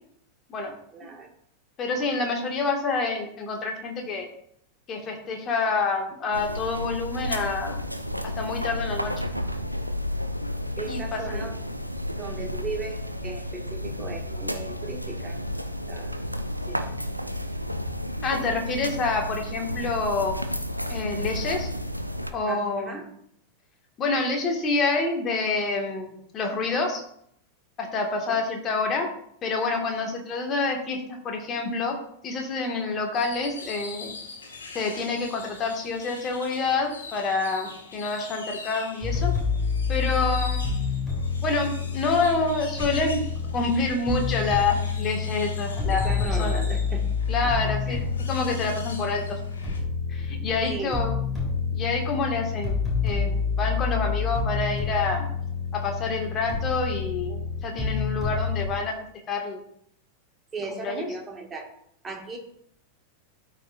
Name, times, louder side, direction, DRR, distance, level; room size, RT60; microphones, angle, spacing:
voice 1, 0.9-1.3 10.8-11.6 12.2-15.4 15.9-16.1 16.7-16.8 22.5-23.1 28.3-28.4 45.9-47.1 47.4-48.0 50.7-51.0 60.5-61.7 62.0-62.4, right 3 dB, 20° right, 2 dB, 1.7 m, -37 dB
voice 2, 1.8-4.3 4.9-7.8 8.4-9.1 10.9-11.5 18.2-20.4 20.9-21.7 22.3-23.0 24.0-27.0 27.8-29.1 29.4-31.0 31.2-31.9 32.2-34.1 34.7-39.3 39.9-40.7 41.4-43.2 43.5-46.1 46.4-46.6 47.3-48.0 48.3-49.4 50.1-51.2 51.7-52.8 53.0-55.3 55.7-58.9 59.3-59.6 60.8-61.1, left 3 dB, 30° left, 2 dB, 1.8 m, -27 dB
sound 1, 6.3-22.3, left 1 dB, 90° right, 0.5 m, -32 dB
sound 2, 33.1-49.8, left 4 dB, 70° left, 1.2 m, -43 dB
sound 3, 39.0-58.7, left 5 dB, ahead, 3.4 m, -28 dB
12.5 x 5.4 x 2.5 m, 0.68 s
figure-of-eight pair, 90°, 0 cm